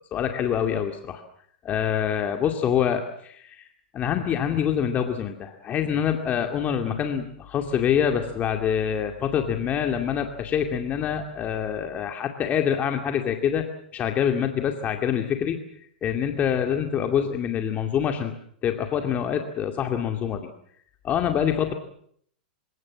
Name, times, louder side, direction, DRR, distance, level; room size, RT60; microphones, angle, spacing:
voice 1, 0.1-1.2 1.6-3.7 3.9-15.6 16.0-18.3 18.6-20.5 21.0-21.7, left 8 dB, 30° left, 5 dB, 2.3 m, -25 dB
29.0 x 17.5 x 7.4 m, 0.65 s
hypercardioid pair, 125°, 5 cm